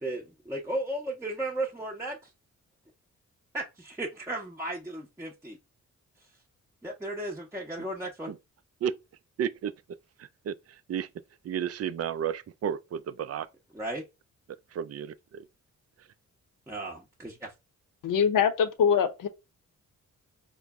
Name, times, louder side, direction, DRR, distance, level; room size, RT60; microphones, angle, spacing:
voice 1, 0.0-2.3 3.5-5.6 6.8-8.3 13.7-14.0 16.7-17.5, right 1 dB, 10° right, 0.7 m, -35 dB
voice 2, 9.4-9.7 10.5-10.6 10.9-11.1 11.4-13.5 14.7-15.5, right 8 dB, 50° right, 0.4 m, -32 dB
voice 3, 18.0-19.3, left 7 dB, 70° left, 0.7 m, -23 dB
3.8 x 2.0 x 3.4 m
cardioid pair, 60°, 33 cm